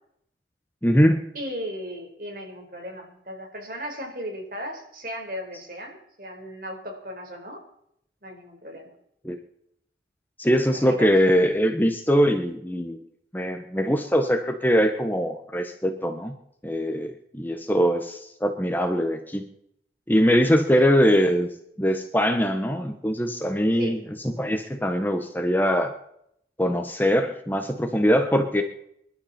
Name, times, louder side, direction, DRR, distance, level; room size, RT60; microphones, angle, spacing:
voice 1, 0.8-1.3 9.2-9.4 10.4-13.0 13.3-16.3 16.6-19.4 20.1-21.5 21.8-24.0 24.2-25.9 26.6-28.6, equal, 10° left, 6 dB, 1.2 m, -22 dB
voice 2, 1.3-7.6 8.2-8.9 10.9-11.2 20.7-20.9 23.7-24.0, equal, 50° right, 2 dB, 4.6 m, -36 dB
25.5 x 12.0 x 4.4 m, 0.72 s
head